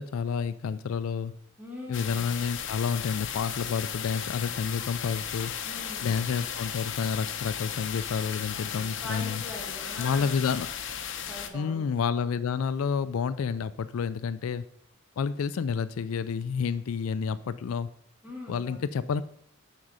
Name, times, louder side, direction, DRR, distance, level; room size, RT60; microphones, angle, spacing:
voice 1, 0.0-1.3 1.9-5.5 6.0-9.4 10.0-10.7 11.5-14.6 15.2-17.9 18.5-19.2, left 6 dB, 85° left, 15 dB, 0.4 m, -29 dB
voice 2, 1.6-2.2 5.6-6.1 8.5-10.5 11.2-11.8 18.2-19.0, left 1 dB, 10° right, -3 dB, 2.4 m, -42 dB
sound 1, 1.9-11.5, left 8 dB, 60° left, 0.7 m, -35 dB
6.1 x 5.2 x 6.5 m, 0.67 s
head